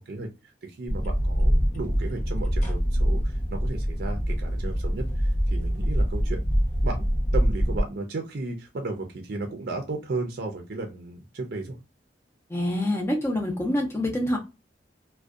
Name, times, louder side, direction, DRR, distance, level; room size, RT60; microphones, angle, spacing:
voice 1, 0.0-6.4 6.8-11.8, right 3 dB, 60° right, 3 dB, 0.5 m, -34 dB
sound 1, 0.9-7.8, equal, 45° left, 0.8 m, -24 dB
voice 2, 12.5-14.4, left 1 dB, 15° left, -1 dB, 0.5 m, -26 dB
2.6 x 2.1 x 2.3 m, 0.27 s
head